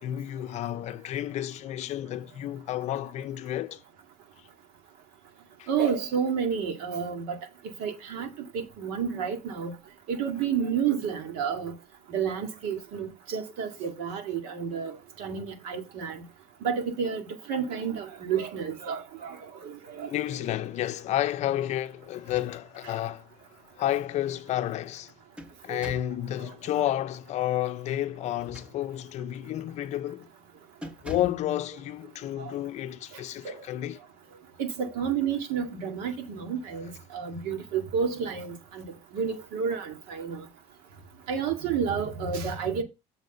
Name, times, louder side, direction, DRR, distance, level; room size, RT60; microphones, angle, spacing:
voice 1, 0.0-3.8 5.6-5.7 20.1-23.3 23.8-25.1 25.6-30.3 31.0-34.0, left 13 dB, 55° left, 0.6 m, -31 dB
voice 2, 5.7-7.4 7.8-9.7 10.1-11.7 12.1-16.2 16.6-20.4 25.7-25.8 26.4-26.5 32.4-32.5 33.4-33.6 34.6-38.8 39.1-40.4 41.3-42.8, right 7 dB, 80° right, 2.1 m, -30 dB
sound 1, 22.2-22.9 23.3-23.4 24.9-26.2 28.3-29.2 29.7-29.9 30.2-30.4 30.8-31.5, left 1 dB, 10° right, 1.2 m, -44 dB
7.1 x 4.1 x 6.6 m
cardioid pair, 130°, 14 cm